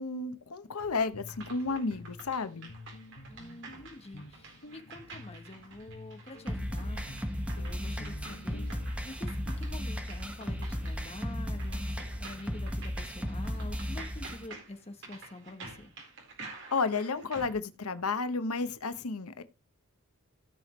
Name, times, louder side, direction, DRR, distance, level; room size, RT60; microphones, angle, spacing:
voice 1, 0.0-2.7 16.7-19.4, left 4 dB, 90° left, 1.0 m, -32 dB
sound 1, 0.8-17.5, right 3 dB, 55° right, 4.1 m, -50 dB
Guitar, 1.1-8.9, left 2 dB, 70° left, 1.8 m, -50 dB
voice 2, 3.3-7.0 7.5-8.8 9.0-15.9, left 2 dB, 30° left, 1.2 m, -47 dB
sound 2, 6.5-14.5, equal, 5° right, 1.3 m, -35 dB
16.5 x 6.0 x 3.1 m
head